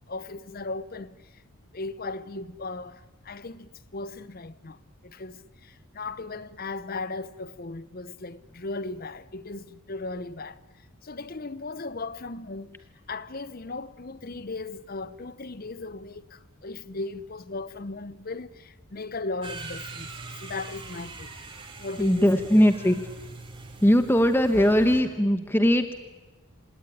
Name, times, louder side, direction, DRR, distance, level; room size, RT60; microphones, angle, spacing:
voice 1, 0.1-1.4 1.7-10.6 11.0-12.8 13.1-20.1 20.4-21.3 21.8-22.3, left 3 dB, 40° left, 0.7 m, -37 dB
sound 1, 19.4-25.0, right 3 dB, 20° right, 3.3 m, -42 dB
voice 2, 22.0-23.1 23.8-25.9, equal, 10° left, 1.0 m, -20 dB
27.0 x 17.5 x 9.9 m
head